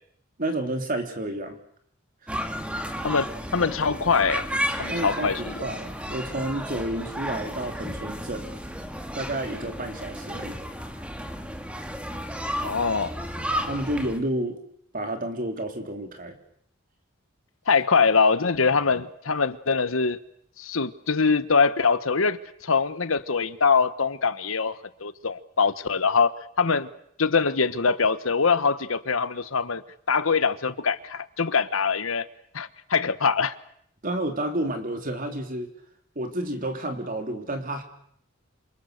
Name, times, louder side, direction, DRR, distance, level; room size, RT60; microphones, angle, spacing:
voice 1, 0.4-1.6 2.2-2.4 4.9-5.3 5.6-8.5 9.2-10.6 13.7-14.6 14.9-16.3 34.0-35.7 36.1-37.8, right 1 dB, 40° right, 5 dB, 3.4 m, -30 dB
sound 1, 2.3-14.2, equal, 5° right, 2.1 m, -33 dB
voice 2, 3.0-4.4 4.8-5.7 12.6-13.1 17.7-20.2 20.6-26.3 26.6-26.9 27.2-29.8 30.1-32.3 32.5-33.5, left 5 dB, 75° left, 13 dB, 1.3 m, -23 dB
27.5 x 27.5 x 6.7 m, 0.68 s
head